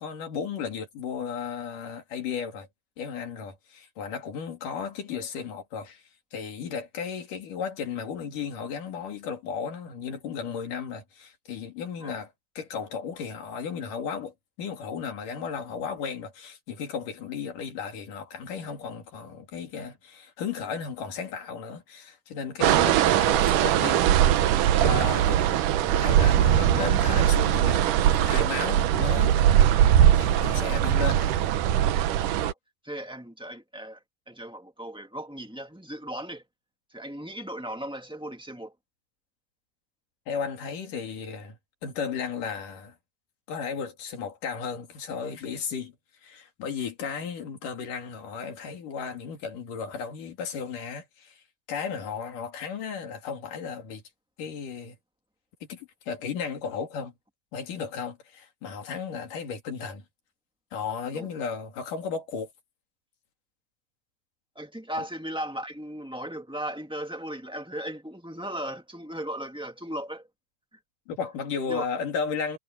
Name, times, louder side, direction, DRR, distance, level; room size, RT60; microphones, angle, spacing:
voice 1, 0.0-2.7 3.0-6.0 6.3-24.0 24.8-25.6 25.9-29.5 30.2-31.3 40.3-41.6 41.8-42.9 43.5-45.9 46.2-51.4 51.7-54.0 54.4-55.0 55.7-57.1 57.5-60.0 60.7-62.5 71.1-72.6, left 6 dB, 75° left, 4.2 m, -34 dB
sound 1, 22.6-32.5, right 11 dB, 75° right, 2.5 m, -21 dB
voice 2, 30.2-30.8 32.4-32.5 32.8-34.0 34.3-36.4 36.9-38.7 61.1-61.3 64.5-70.3 71.7-71.9, right 1 dB, 5° right, 0.9 m, -37 dB
omnidirectional pair, 3.8 m